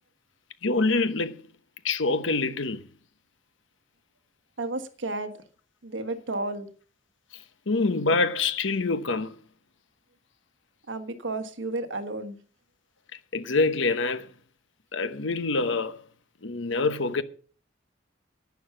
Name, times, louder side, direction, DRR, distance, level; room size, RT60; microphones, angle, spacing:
voice 1, 0.6-1.4 1.8-2.9 7.7-9.3 13.3-14.3 14.9-16.0 16.4-17.2, left 3 dB, 80° left, 1.0 m, -25 dB
voice 2, 4.6-5.3 5.8-6.7 10.9-12.3, right 2 dB, 75° right, 1.4 m, -32 dB
11.5 x 9.5 x 5.8 m
head